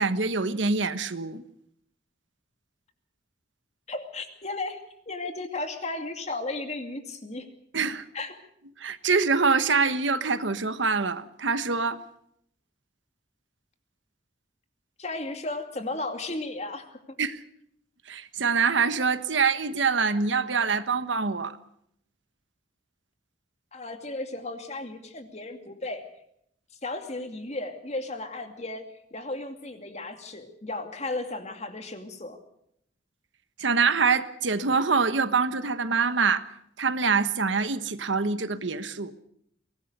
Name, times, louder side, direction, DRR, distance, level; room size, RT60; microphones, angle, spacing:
voice 1, 0.0-1.4 7.7-8.0 8.8-12.0 17.2-17.4 18.1-21.6 33.6-36.4 36.8-39.1, right 5 dB, 85° right, 1.3 m, -25 dB
voice 2, 3.9-7.5 8.1-8.3 15.0-17.0 23.7-26.0 26.8-28.8 29.1-32.4, left 2 dB, 35° left, 2.5 m, -35 dB
23.0 x 19.0 x 6.7 m
head